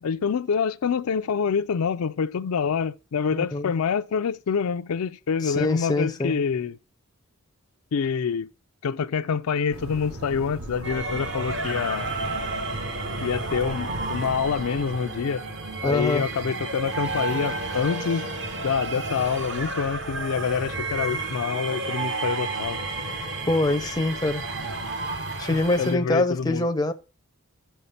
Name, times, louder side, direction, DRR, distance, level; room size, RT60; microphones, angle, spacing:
voice 1, 0.0-6.8 7.9-8.5 8.8-12.1 13.2-15.4 15.8-18.3 18.6-22.8 25.8-26.7, left 6 dB, 85° left, 0.4 m, -26 dB
voice 2, 3.3-3.7 5.4-6.4 15.8-16.2 23.5-24.4 25.4-26.9, left 2 dB, 20° left, 0.5 m, -24 dB
sound 1, 9.7-15.0, right 1 dB, 80° right, 1.5 m, -38 dB
sound 2, 10.8-26.0, right 3 dB, 55° right, 1.0 m, -31 dB
5.8 x 5.5 x 6.9 m
head